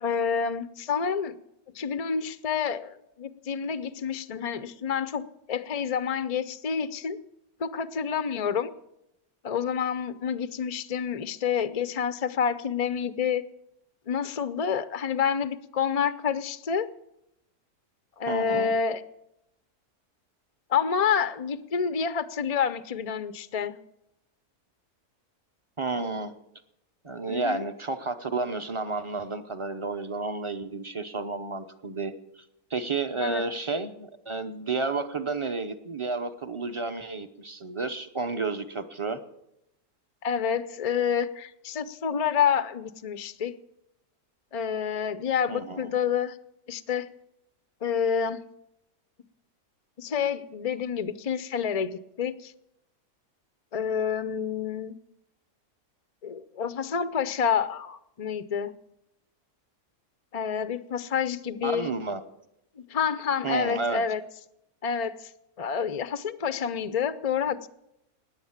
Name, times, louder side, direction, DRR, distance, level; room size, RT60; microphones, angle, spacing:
voice 1, 0.0-1.4 1.7-7.2 7.6-8.7 9.4-13.4 14.1-16.9 18.2-19.0 20.7-23.8 27.3-27.6 33.2-33.4 40.2-43.5 44.5-46.4 46.7-47.1 47.8-48.4 50.0-52.5 53.7-54.9 56.2-58.7 60.3-61.9 62.8-64.2 64.8-65.3 65.6-67.7, left 7 dB, 55° left, 13 dB, 0.4 m, -28 dB
voice 2, 18.3-18.7 25.8-26.3 27.0-32.1 32.7-39.2 45.5-45.9 61.6-62.2 63.4-64.0, right 3 dB, 30° right, 10 dB, 0.6 m, -31 dB
17.0 x 10.0 x 7.2 m, 0.82 s
omnidirectional pair, 1.6 m